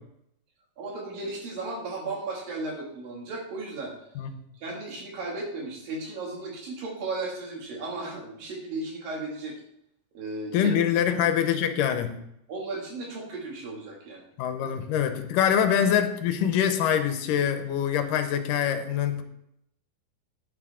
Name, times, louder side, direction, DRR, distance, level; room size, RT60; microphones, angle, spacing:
voice 1, 0.8-3.9 4.6-9.5 10.1-10.7 11.1-11.3 12.5-14.3 14.6-14.7 15.6-15.8, right 3 dB, 75° right, -2 dB, 4.1 m, -35 dB
voice 2, 10.5-12.2 14.4-19.2, left 9 dB, 80° left, 8 dB, 2.3 m, -24 dB
9.7 x 9.5 x 3.7 m, 0.78 s
omnidirectional pair, 4.0 m